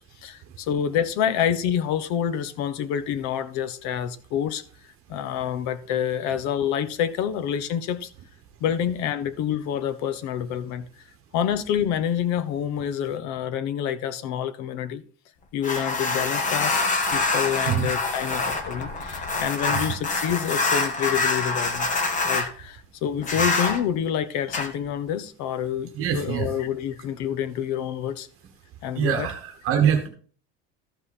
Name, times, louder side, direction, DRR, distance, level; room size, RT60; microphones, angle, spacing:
voice 1, 0.2-4.6 5.1-8.1 8.6-10.9 11.3-15.0 15.5-16.8 17.1-21.9 22.3-28.3 28.8-29.3, left 9 dB, 55° left, 1.0 m, -27 dB
sound 1, 15.6-22.5 23.2-23.8 24.5-24.7, left 3 dB, 20° left, 1.2 m, -25 dB
voice 2, 25.9-26.5 28.9-30.1, right 8 dB, 40° right, 1.3 m, -24 dB
13.5 x 5.5 x 4.2 m
cardioid pair, 165°, 33 cm